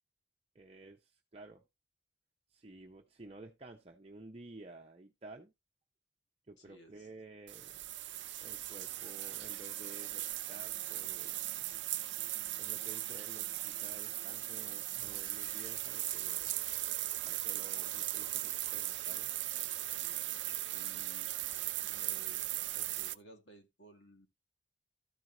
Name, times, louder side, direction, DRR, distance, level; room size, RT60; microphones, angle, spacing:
voice 1, 0.5-1.6 2.5-5.5 6.5-7.9 8.4-11.4 12.6-16.5 17.2-19.3, right 2 dB, 35° right, 0.8 m, -53 dB
voice 2, 6.6-7.1 19.9-20.3 20.7-21.3 21.8-24.3, equal, 80° left, 2.2 m, -58 dB
sound 1, 7.5-23.1, right 15 dB, 80° right, 0.5 m, -38 dB
13.0 x 4.6 x 3.8 m
head